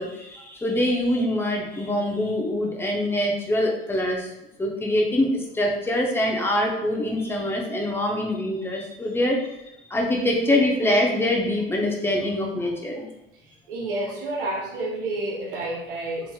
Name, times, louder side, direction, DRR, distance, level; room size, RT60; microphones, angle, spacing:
voice 1, 0.0-4.3 4.6-9.4 9.9-13.1, left 1 dB, 10° left, 0 dB, 0.7 m, -24 dB
voice 2, 13.7-16.3, right 2 dB, 65° right, -1 dB, 0.8 m, -29 dB
4.2 x 3.2 x 2.2 m, 0.89 s
figure-of-eight pair, 65°, 29 cm